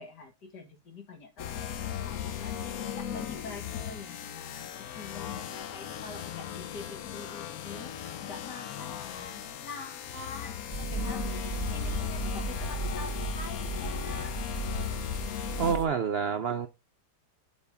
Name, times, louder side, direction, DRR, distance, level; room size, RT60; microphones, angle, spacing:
voice 1, 0.0-14.4, left 4 dB, 85° left, 2.6 m, -46 dB
sound 1, 1.4-15.7, left 9 dB, 65° left, 1.1 m, -37 dB
sound 2, 10.7-15.8, right 4 dB, 20° left, 1.2 m, -36 dB
voice 2, 15.6-16.7, right 6 dB, 75° right, 0.5 m, -28 dB
7.2 x 4.2 x 5.8 m
omnidirectional pair, 1.8 m